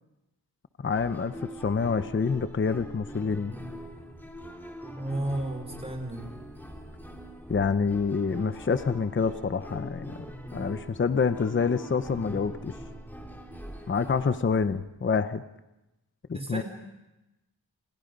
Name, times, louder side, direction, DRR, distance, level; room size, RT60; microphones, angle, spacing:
voice 1, 0.8-1.3 1.6-3.5 7.5-10.2 10.5-12.7 13.9-15.4 16.3-16.6, left 5 dB, 30° left, 11 dB, 0.8 m, -27 dB
sound 1, 0.9-14.8, equal, 5° left, 2.9 m, -42 dB
voice 2, 5.0-6.3 16.3-16.6, right 1 dB, 15° right, 5 dB, 4.3 m, -32 dB
29.5 x 28.0 x 5.3 m, 0.97 s
wide cardioid pair, 145°, 40 cm